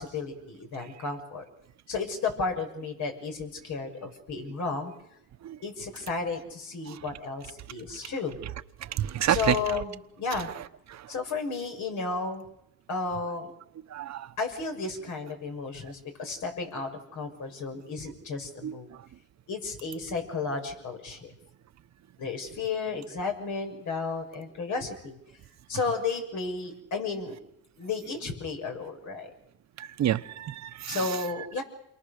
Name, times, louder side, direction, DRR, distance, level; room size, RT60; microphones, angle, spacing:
voice 1, 0.0-1.4 1.9-4.9 5.6-8.4 9.3-10.5 11.1-12.4 12.9-13.5 14.4-18.9 19.5-21.3 22.2-25.2 25.7-27.3 27.8-29.3 30.9-31.6, left 4 dB, 75° left, 4 dB, 6.2 m, -33 dB
voice 2, 8.8-9.6 10.9-11.1 13.9-14.3 18.6-18.8 29.8-31.1, right 11 dB, 65° right, 12 dB, 1.1 m, -28 dB
28.5 x 22.5 x 6.7 m, 0.81 s
cardioid pair, 90°, 30 cm